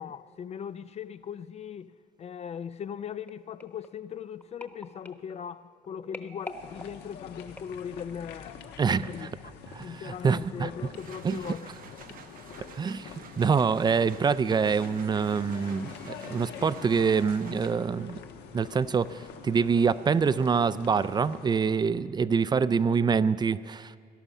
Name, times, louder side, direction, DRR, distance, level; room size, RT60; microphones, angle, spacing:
voice 1, 0.0-1.9 2.2-9.5 9.8-11.7, left 8 dB, 40° left, 0.4 m, -39 dB
sound 1, 3.3-8.3 8.9-9.1 9.4-9.5, left 1 dB, 10° left, 1.1 m, -47 dB
sound 2, 6.4-21.7, left 7 dB, 80° left, 1.2 m, -45 dB
voice 2, 8.8-9.3 9.7-10.7 11.2-11.4 12.8-13.1 13.4-18.2 18.5-24.0, right 5 dB, 25° right, 0.4 m, -25 dB
sound 3, 10.7-18.1, right 8 dB, 55° right, 0.9 m, -51 dB
17.0 x 11.0 x 7.2 m
cardioid pair, 110°, 17 cm